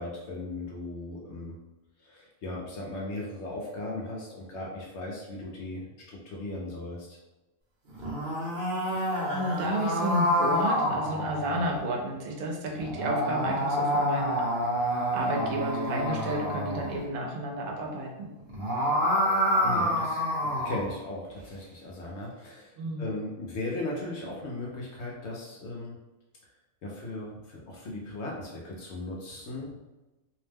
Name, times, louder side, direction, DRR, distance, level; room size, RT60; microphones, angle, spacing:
voice 1, 0.0-1.5 2.0-7.2 19.6-26.0 26.8-29.8, left 2 dB, 65° left, -3 dB, 0.8 m, -37 dB
sound 1, 7.9-11.8 12.8-17.0 18.4-20.9, equal, 45° right, 0.9 m, -28 dB
voice 2, 9.3-14.4 15.1-18.3 22.8-23.1, right 1 dB, 80° right, 0 dB, 1.0 m, -31 dB
2.7 x 2.1 x 3.3 m, 1.1 s
omnidirectional pair, 1.5 m